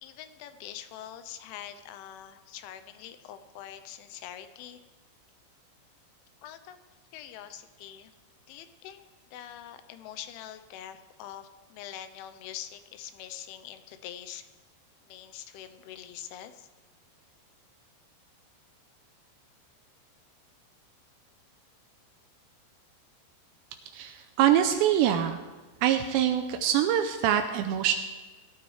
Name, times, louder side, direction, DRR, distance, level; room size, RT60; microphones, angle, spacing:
voice 1, 0.0-4.8 6.4-6.8 7.1-8.1 8.5-14.5 15.0-16.7, left 11 dB, 85° left, 10 dB, 3.1 m, -44 dB
voice 2, 23.9-25.4 25.8-28.0, right 10 dB, 85° right, 6 dB, 2.6 m, -24 dB
18.5 x 12.5 x 3.2 m, 1.3 s
omnidirectional pair, 5.5 m